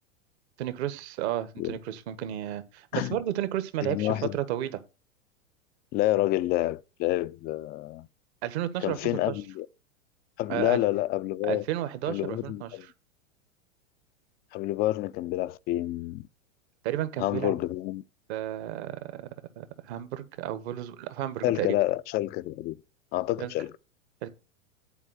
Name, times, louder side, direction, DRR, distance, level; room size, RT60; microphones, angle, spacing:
voice 1, 0.6-4.8 8.4-9.0 9.3-9.4 10.5-10.8 11.4-12.9 16.8-17.5 18.3-19.2 19.6-21.8 23.4-23.5 24.2-24.3, right 12 dB, 55° right, 1.4 m, -32 dB
voice 2, 3.8-4.4 5.9-8.1 8.8-9.7 10.4-11.6 12.1-12.9 14.5-16.3 17.2-18.0 21.4-22.8 23.1-23.7, left 16 dB, 25° left, 0.4 m, -28 dB
11.0 x 4.5 x 5.7 m
hypercardioid pair, 100°, 39 cm